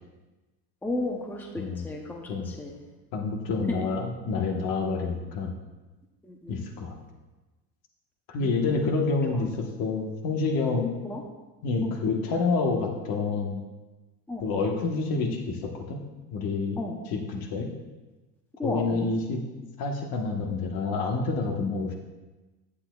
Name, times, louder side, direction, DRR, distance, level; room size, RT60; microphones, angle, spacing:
voice 1, 0.8-2.8 3.7-3.8 6.2-6.6 8.4-8.7 9.3-9.4 11.0-11.2 11.8-11.9 14.3-14.4 16.8-17.0 18.6-19.1, left 2 dB, 5° left, 1 dB, 0.6 m, -34 dB
voice 2, 3.1-5.5 6.5-7.0 8.3-10.9 11.6-13.6 14.4-16.0 16.3-16.8 17.1-17.7 18.6-19.4 19.8-21.9, left 4 dB, 55° left, 2 dB, 1.3 m, -28 dB
10.5 x 8.6 x 2.3 m, 1.2 s
cardioid pair, 140°, 42 cm